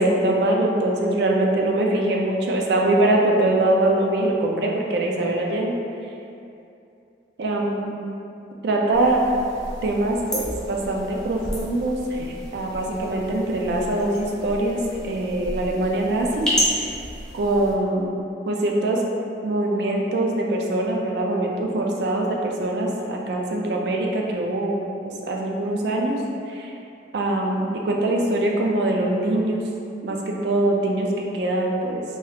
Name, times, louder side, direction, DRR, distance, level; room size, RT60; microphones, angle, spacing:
voice 1, 0.0-5.7 7.4-7.9 8.6-9.2 9.8-16.9 17.3-18.2 18.5-19.0 19.4-24.8 25.3-26.2 26.5-26.7 27.1-29.6 30.0-32.0, right 1 dB, 70° right, 0 dB, 0.3 m, -23 dB
sound 1, 8.9-17.7, equal, 5° left, 0.5 m, -31 dB
2.9 x 2.3 x 3.2 m, 2.6 s
head